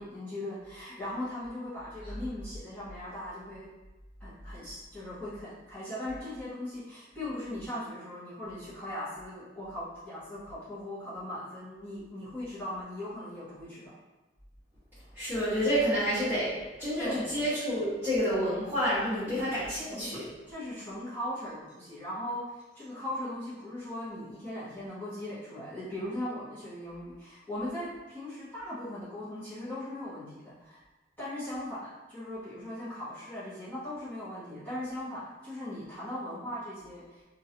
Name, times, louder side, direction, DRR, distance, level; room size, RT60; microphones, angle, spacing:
voice 1, 0.0-3.7 4.2-14.0 17.0-17.4 19.2-19.5 19.9-20.1 20.5-30.8 31.2-37.2, left 1 dB, 10° left, -14 dB, 1.2 m, -39 dB
voice 2, 15.1-20.2, equal, 15° right, -18 dB, 1.3 m, -29 dB
2.9 x 2.6 x 2.8 m, 1.1 s
head